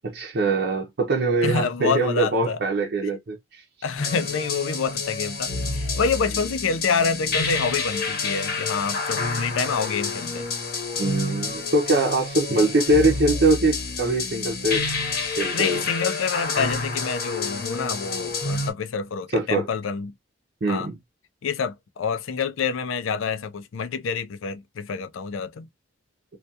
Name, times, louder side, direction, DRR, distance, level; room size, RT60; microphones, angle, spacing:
voice 1, 0.0-3.6 11.0-14.9 15.4-15.8 19.3-19.7 20.6-21.0, right 2 dB, 50° right, 0.5 m, -22 dB
voice 2, 1.4-2.6 3.8-10.5 12.5-12.7 15.5-20.1 20.7-20.9 21.4-25.7, left 5 dB, 80° left, 0.4 m, -27 dB
sound 1, 4.0-18.7, left 3 dB, 50° left, 0.8 m, -28 dB
2.3 x 2.2 x 2.6 m
head